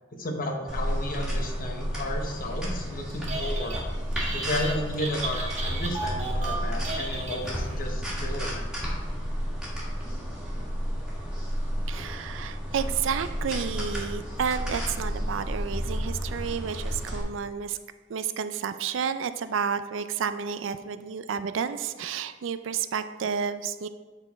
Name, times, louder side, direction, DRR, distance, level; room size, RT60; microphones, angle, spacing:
voice 1, 0.1-3.8 4.3-8.6, left 1 dB, 50° left, 2 dB, 1.0 m, -33 dB
sound 1, 0.7-17.2, equal, 5° right, 1.9 m, -31 dB
Telephone, 3.1-3.8 4.1-7.8, right 3 dB, 40° right, 1.1 m, -34 dB
voice 2, 11.9-17.8 18.1-23.9, right 7 dB, 75° right, 11 dB, 0.4 m, -31 dB
9.0 x 4.0 x 4.1 m, 1.3 s
head